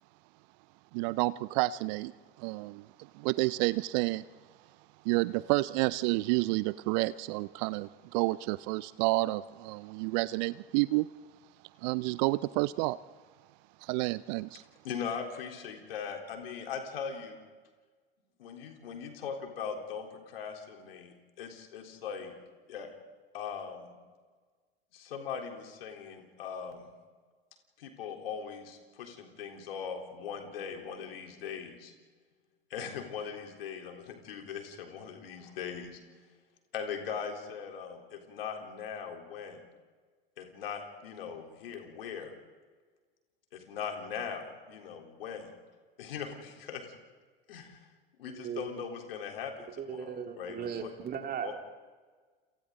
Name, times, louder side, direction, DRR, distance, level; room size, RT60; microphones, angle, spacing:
voice 1, 0.9-2.1 2.4-2.9 3.1-4.3 5.0-11.1 11.8-13.0 13.8-14.6, right 21 dB, 45° right, 19 dB, 0.6 m, -30 dB
voice 2, 14.8-17.4 18.4-22.3 22.7-22.9 23.3-24.0 24.9-26.9 27.8-31.9 32.7-36.0 36.7-39.6 40.4-42.3 43.5-45.5 46.0-46.9 47.5-47.8 48.2-50.9 51.4-51.5, left 7 dB, 65° left, 2 dB, 3.9 m, -40 dB
voice 3, 48.3-48.9 49.8-51.5, right 7 dB, 30° right, 5 dB, 2.6 m, -38 dB
29.5 x 28.5 x 3.9 m, 1.5 s
figure-of-eight pair, 85°, 31 cm